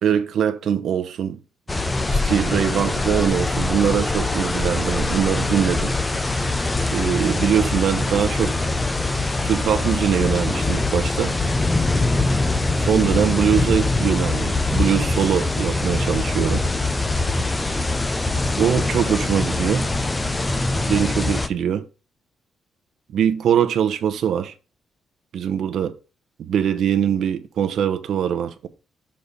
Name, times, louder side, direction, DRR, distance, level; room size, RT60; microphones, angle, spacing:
voice 1, 0.0-1.4 2.1-5.9 6.9-8.5 9.4-11.4 12.8-16.6 18.6-19.9 20.9-21.8 23.1-24.5 25.3-25.9 26.4-28.7, right 8 dB, 60° right, 0.8 m, -22 dB
sound 1, 1.7-21.5, left 2 dB, 15° left, 0.5 m, -23 dB
6.7 x 4.2 x 5.1 m
cardioid pair, 175°, 0 cm